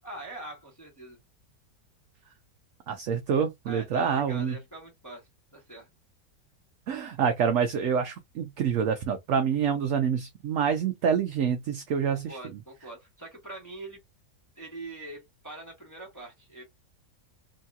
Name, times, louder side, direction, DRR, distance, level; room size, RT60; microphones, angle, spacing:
voice 1, 0.0-1.2 3.6-5.9 12.1-14.0 14.6-16.6, right 2 dB, 15° left, 0.9 m, -43 dB
voice 2, 2.9-4.6 6.9-12.4, right 7 dB, 70° right, 0.8 m, -27 dB
3.0 x 2.8 x 2.3 m
omnidirectional pair, 1.8 m